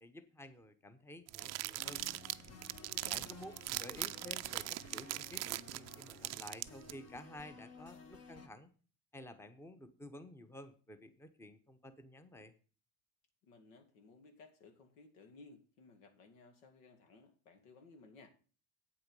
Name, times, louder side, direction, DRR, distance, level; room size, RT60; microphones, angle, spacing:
voice 1, 0.0-2.1 3.1-8.7 9.1-12.5, left 1 dB, 5° left, 11 dB, 0.9 m, -52 dB
sound 1, 1.3-6.9, right 17 dB, 45° right, 0.5 m, -41 dB
sound 2, 1.8-8.5, left 4 dB, 40° left, 1.5 m, -55 dB
voice 2, 2.8-3.4 13.4-18.3, left 3 dB, 85° left, 7 dB, 2.3 m, -59 dB
8.4 x 7.7 x 5.4 m, 0.38 s
supercardioid pair, 115°, 40 cm